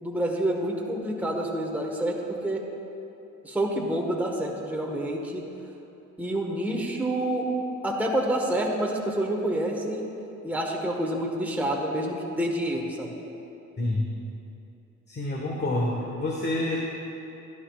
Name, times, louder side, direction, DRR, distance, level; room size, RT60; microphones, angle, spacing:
voice 1, 0.0-2.6 3.4-5.4 6.2-7.5 7.8-10.0 10.4-13.1, right 1 dB, 5° right, -1 dB, 1.4 m, -28 dB
voice 2, 13.8-14.1 15.1-16.8, left 1 dB, 35° left, -2 dB, 1.4 m, -27 dB
16.0 x 11.5 x 2.4 m, 2.9 s
cardioid pair, 90°, 30 cm